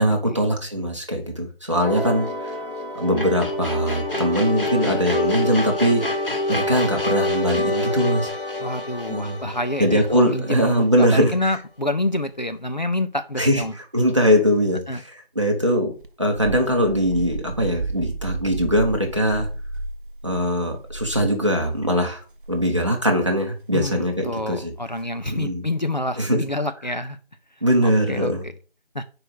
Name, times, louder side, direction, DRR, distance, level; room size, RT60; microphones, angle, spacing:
voice 1, 0.0-2.5 2.9-6.1 6.5-8.3 9.1-9.5 9.8-11.4 13.4-19.5 20.2-22.2 22.5-24.7 25.3-25.6 26.2-26.4 27.6-28.5, equal, 30° right, 2 dB, 1.2 m, -21 dB
sound 1, 1.8-11.1, left 1 dB, 65° left, 2.1 m, -26 dB
voice 2, 8.6-13.7 14.9-15.0 23.7-27.2 27.8-28.5 28.9-29.0, left 1 dB, 50° left, 9 dB, 0.5 m, -27 dB
sound 2, 16.0-21.9 22.3-22.7 23.8-24.1 25.3-25.7, right 3 dB, 60° right, 0.7 m, -33 dB
4.9 x 4.7 x 6.1 m, 0.37 s
figure-of-eight pair, 170°, 30 cm